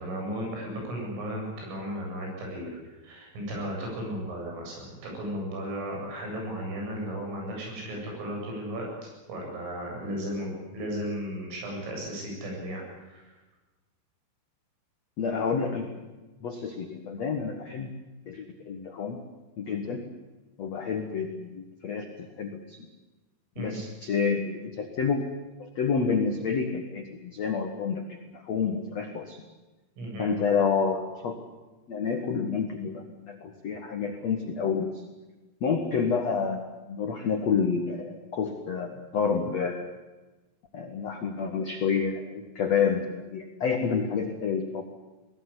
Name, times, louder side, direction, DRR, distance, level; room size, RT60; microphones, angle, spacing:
voice 1, 0.0-2.8 3.0-8.9 9.3-12.8 13.1-13.3 23.6-23.8 30.0-30.3, equal, 85° right, -1 dB, 10.5 m, -35 dB
voice 2, 15.2-15.9 16.4-17.9 18.3-19.2 19.6-20.1 20.6-22.0 22.4-22.8 23.6-25.2 25.6-29.4 30.2-31.4 31.9-35.0 35.6-39.9 40.7-44.8, left 6 dB, 75° left, 5 dB, 1.5 m, -29 dB
21.5 x 18.5 x 9.9 m, 1.1 s
omnidirectional pair, 5.8 m